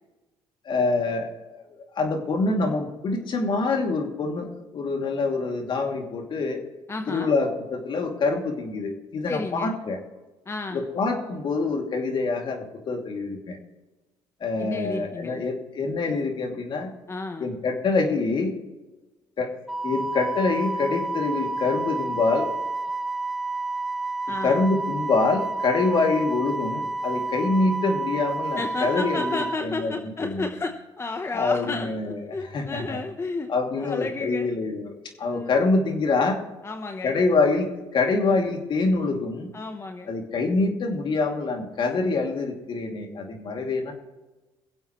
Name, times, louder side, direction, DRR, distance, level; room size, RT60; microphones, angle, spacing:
voice 1, 0.7-1.3 1.7-6.6 7.1-10.0 10.7-13.6 14.4-16.9 17.4-18.6 19.4-19.5 19.8-22.5 24.4-29.9 30.2-30.5 31.3-32.2 32.5-33.0 33.5-34.9 35.2-36.4 37.0-39.5 40.1-43.9, left 3 dB, 55° left, 3 dB, 2.7 m, -25 dB
voice 2, 6.9-7.4 9.3-9.8 10.4-10.8 14.6-15.4 17.1-17.5 24.3-24.6 28.6-34.5 35.3-35.6 36.6-37.1 39.5-40.1, left 3 dB, 25° left, 5 dB, 1.0 m, -32 dB
Wind instrument woodwind instrument, 19.7-29.6, right 2 dB, ahead, 0.9 m, -30 dB
23.5 x 7.9 x 3.2 m, 1.1 s
supercardioid pair, 75°, 10 cm